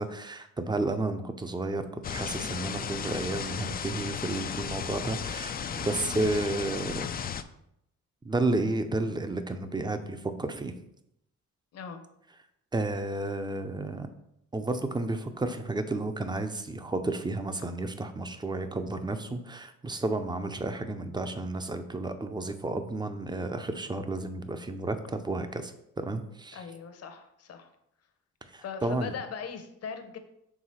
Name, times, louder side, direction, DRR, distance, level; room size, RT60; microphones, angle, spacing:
voice 1, 0.0-7.1 8.2-10.7 12.7-14.1 14.5-25.7 26.0-26.6 28.5-29.1, right 2 dB, 15° right, 8 dB, 0.6 m, -32 dB
sound 1, 2.0-7.4, left 7 dB, 30° left, 0.4 m, -35 dB
voice 2, 11.7-12.0 26.5-27.7 28.6-30.2, left 6 dB, 50° left, 8 dB, 0.9 m, -40 dB
4.9 x 3.6 x 5.6 m, 0.77 s
cardioid pair, 100°, 31 cm